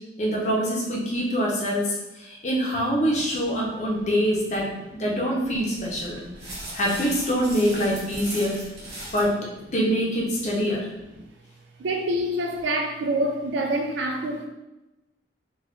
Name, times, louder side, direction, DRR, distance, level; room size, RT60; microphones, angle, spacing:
voice 1, 0.2-6.2 6.7-8.6 9.1-9.3 9.7-10.8, equal, 40° left, -2 dB, 0.7 m, -25 dB
sound 1, 5.7-9.3, right 1 dB, 60° right, 1.2 m, -38 dB
voice 2, 11.8-14.5, right 1 dB, 75° right, 2 dB, 0.4 m, -26 dB
4.0 x 2.3 x 3.0 m, 1.0 s
head